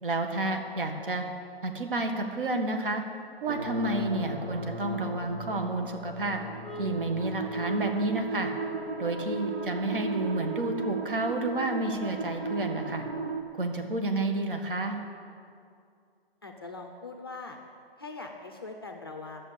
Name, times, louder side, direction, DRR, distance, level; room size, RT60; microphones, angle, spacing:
voice 1, 0.0-1.2 1.6-3.0 3.4-6.4 6.8-8.5 9.0-13.0 13.5-15.0, right 2 dB, 60° right, 5 dB, 1.7 m, -30 dB
sound 1, 3.5-13.4, right 3 dB, 75° right, 1.4 m, -36 dB
sound 2, 6.6-11.0, right 1 dB, 10° right, 0.9 m, -43 dB
voice 2, 16.4-17.6 18.0-19.5, left 3 dB, 25° left, 3 dB, 0.6 m, -41 dB
12.5 x 7.2 x 8.7 m, 2.3 s
hypercardioid pair, 175°, 31 cm